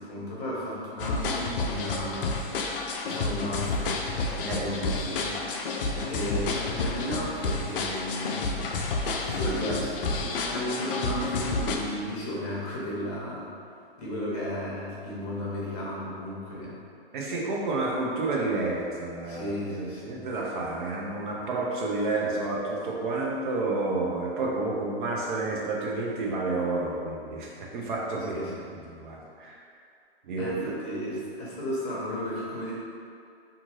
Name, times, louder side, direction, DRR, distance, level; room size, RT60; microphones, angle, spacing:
voice 1, 0.0-2.3 3.0-4.0 4.5-5.3 6.0-8.4 9.2-13.5 14.0-16.8 19.3-20.2 28.3-28.7 30.3-32.7, equal, 40° left, -6 dB, 0.9 m, -34 dB
sound 1, 1.0-11.8, left 3 dB, 60° left, 0.4 m, -30 dB
voice 2, 17.1-28.5 28.9-29.6 30.2-30.7, right 2 dB, 55° right, -3 dB, 0.6 m, -30 dB
2.6 x 2.5 x 3.1 m, 2.4 s
hypercardioid pair, 155°, 31 cm